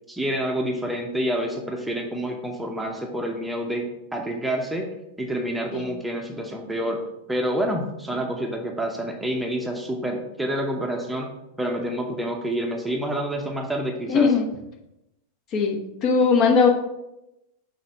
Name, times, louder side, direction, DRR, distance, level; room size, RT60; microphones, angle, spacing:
voice 1, 0.1-4.8 5.2-7.0 7.3-11.3 11.6-14.3, right 1 dB, 5° right, 1 dB, 0.8 m, -28 dB
voice 2, 14.1-14.5 15.5-16.7, left 5 dB, 35° left, 2 dB, 1.0 m, -19 dB
6.3 x 3.5 x 5.4 m, 0.90 s
figure-of-eight pair, 90°, 0 cm